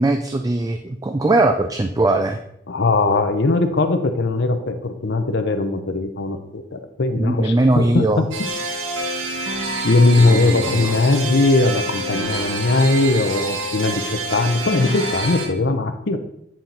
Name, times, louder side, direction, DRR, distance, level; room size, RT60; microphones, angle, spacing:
voice 1, 0.0-2.4 7.2-8.2 10.2-10.9, right 2 dB, 20° right, 6 dB, 0.3 m, -20 dB
voice 2, 2.7-8.3 9.8-16.2, left 2 dB, 60° left, 7 dB, 0.7 m, -19 dB
sound 1, 8.3-15.5, right 2 dB, 80° right, 1.2 m, -27 dB
9.1 x 4.3 x 3.9 m, 0.76 s
head